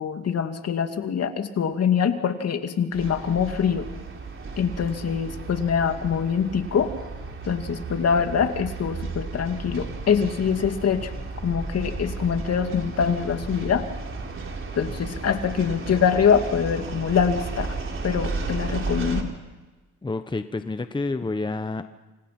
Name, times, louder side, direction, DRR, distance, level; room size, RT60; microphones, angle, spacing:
voice 1, 0.0-3.9 4.6-6.9 7.4-11.1 11.4-13.8 14.7-17.7 18.0-19.3, left 7 dB, 55° left, 6 dB, 2.5 m, -24 dB
sound 1, 2.9-19.2, right 3 dB, 40° right, 4.0 m, -34 dB
voice 2, 20.0-21.8, left 3 dB, 15° left, 9 dB, 1.0 m, -29 dB
28.5 x 26.5 x 6.0 m, 1.2 s
cardioid pair, 90°, 30 cm